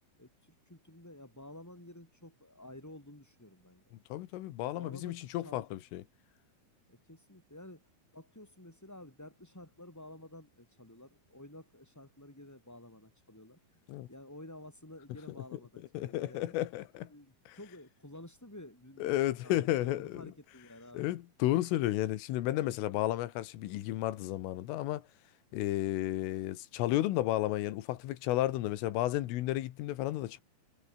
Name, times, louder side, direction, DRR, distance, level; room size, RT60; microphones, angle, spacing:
voice 1, 0.2-3.8 4.6-5.7 6.9-7.9 8.1-13.8 14.1-16.6 17.0-21.2, left 1 dB, 5° left, 6.0 m, -52 dB
voice 2, 4.1-6.0 13.9-14.1 16.0-17.1 19.0-20.2 20.9-25.0 25.5-30.4, left 15 dB, 80° left, 3.9 m, -32 dB
omnidirectional pair, 5.9 m